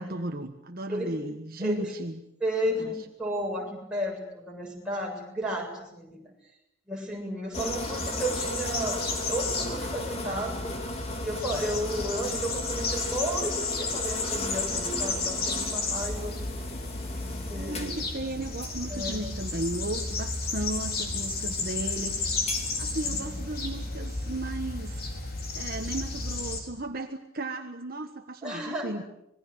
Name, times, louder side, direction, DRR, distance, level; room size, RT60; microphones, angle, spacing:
voice 1, 0.0-2.2 2.8-3.0 17.5-22.3 22.8-25.1 25.5-29.0, right 2 dB, 45° right, 5 dB, 1.4 m, -35 dB
voice 2, 2.4-2.9 3.2-6.3 6.9-9.0 9.3-10.8 11.2-16.4 17.2-17.9 18.9-19.3 23.1-23.4 28.4-28.9, equal, 5° right, -2 dB, 7.4 m, -33 dB
sound 1, 7.5-26.6, left 3 dB, 50° left, 4.5 m, -33 dB
sound 2, 7.5-24.1, left 1 dB, 30° left, 2.6 m, -38 dB
26.0 x 21.0 x 8.0 m, 0.84 s
head